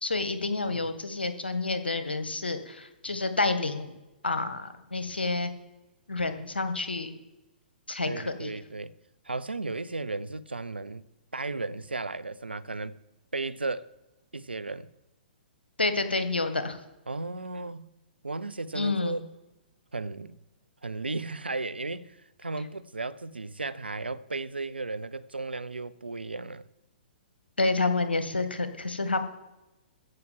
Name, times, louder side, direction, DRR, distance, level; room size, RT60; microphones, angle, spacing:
voice 1, 0.0-3.9 4.2-5.5 6.1-7.2 7.9-8.5 15.8-16.8 18.7-19.2 27.6-29.2, left 3 dB, 80° left, 1.6 m, -29 dB
voice 2, 8.0-8.9 9.2-11.0 11.3-13.0 13.3-13.9 14.3-14.9 17.1-17.9 18.2-19.3 19.9-20.4 20.8-26.7, right 3 dB, 85° right, 0.7 m, -35 dB
14.5 x 5.9 x 7.4 m
figure-of-eight pair, 120°, 5 cm